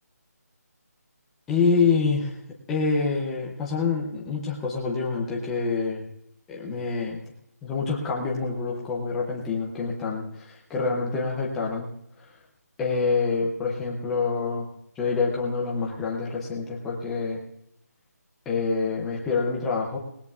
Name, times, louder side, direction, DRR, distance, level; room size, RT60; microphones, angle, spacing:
voice 1, 1.5-2.4 2.7-6.0 6.5-7.2 7.6-11.9 12.2-12.3 12.8-14.7 15.0-17.4 18.5-20.0, left 4 dB, ahead, -3 dB, 0.4 m, -26 dB
19.0 x 19.0 x 2.4 m, 0.77 s
figure-of-eight pair, 180°, 9 cm